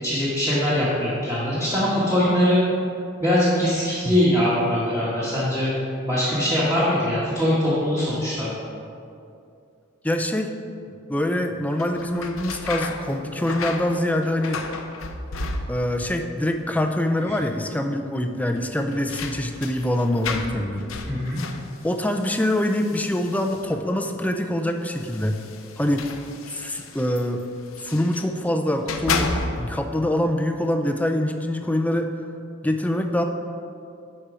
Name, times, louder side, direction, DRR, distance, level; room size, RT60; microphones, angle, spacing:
voice 1, 0.0-2.6 3.2-5.7 6.0-8.5 17.2-17.4 21.1-21.4, left 1 dB, 15° right, -10 dB, 1.5 m, -22 dB
voice 2, 10.0-10.5 11.1-14.7 15.7-20.9 21.8-25.4 25.8-26.1 26.5-27.4 27.8-32.2 32.6-33.2, left 1 dB, 5° left, 5 dB, 0.4 m, -24 dB
sound 1, 11.7-16.1 16.4-17.0 17.3-17.4 18.5-23.9 24.8-28.3 28.7-29.9, left 3 dB, 80° left, 0.7 m, -33 dB
11.5 x 4.4 x 4.9 m, 2.6 s
head